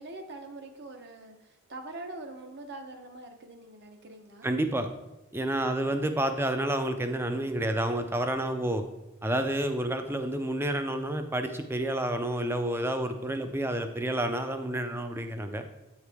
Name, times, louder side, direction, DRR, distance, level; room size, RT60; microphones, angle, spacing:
voice 1, 0.0-4.5, right 2 dB, 50° right, 5 dB, 0.8 m, -44 dB
voice 2, 4.4-4.9 5.3-8.8 9.2-15.7, right 1 dB, 10° right, 7 dB, 0.4 m, -29 dB
8.4 x 4.8 x 3.4 m, 0.99 s
head